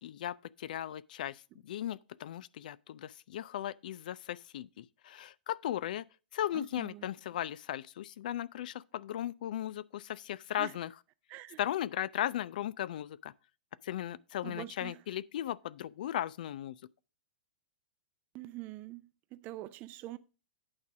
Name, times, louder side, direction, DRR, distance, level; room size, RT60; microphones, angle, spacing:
voice 1, 0.0-6.1 6.3-10.9 11.6-13.3 13.8-16.8, left 11 dB, 60° left, 0.4 m, -37 dB
voice 2, 6.5-7.0 10.6-10.7 11.3-11.6 14.4-15.0 18.3-20.2, right 16 dB, 35° right, 0.6 m, -45 dB
8.8 x 4.0 x 6.0 m
hypercardioid pair, 115°, 5 cm